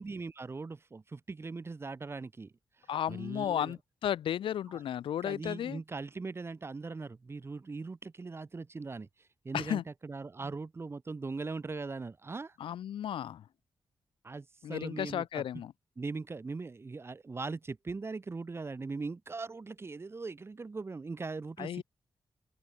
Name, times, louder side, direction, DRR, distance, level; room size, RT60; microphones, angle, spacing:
voice 1, 0.0-2.5 3.1-3.8 4.7-4.8 5.2-9.1 9.4-12.5 14.2-15.4 16.0-21.8, right 4 dB, 30° right, 1.6 m, -40 dB
voice 2, 2.9-5.8 9.5-9.8 12.6-13.4 14.6-15.7 21.6-21.8, left 10 dB, 80° left, 0.4 m, -34 dB
open air
wide cardioid pair, 130°, 9 cm